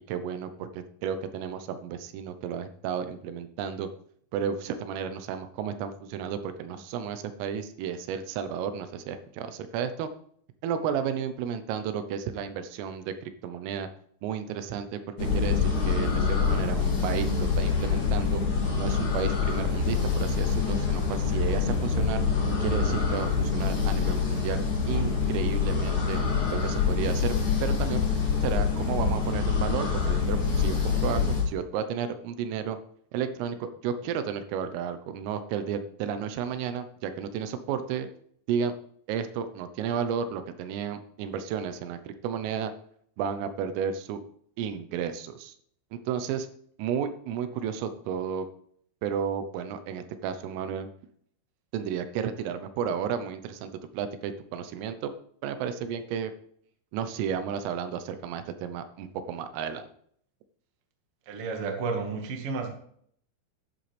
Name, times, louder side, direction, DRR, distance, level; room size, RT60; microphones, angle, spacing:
voice 1, 0.1-3.9 4.3-10.1 10.6-13.9 14.2-18.4 18.8-22.2 22.6-24.6 24.9-26.2 26.5-27.3 27.6-28.0 28.4-32.8 33.1-38.1 38.5-38.7 39.1-42.7 43.2-44.2 44.6-45.5 45.9-46.5 46.8-48.5 49.0-50.9 51.7-55.1 55.4-56.3 56.9-59.9, right 7 dB, 90° right, 10 dB, 3.6 m, -32 dB
sound 1, 15.2-31.4, left 5 dB, 30° left, 2.9 m, -26 dB
voice 2, 61.2-62.7, right 4 dB, 50° right, 3 dB, 1.7 m, -31 dB
12.0 x 10.5 x 3.5 m, 0.63 s
omnidirectional pair, 5.7 m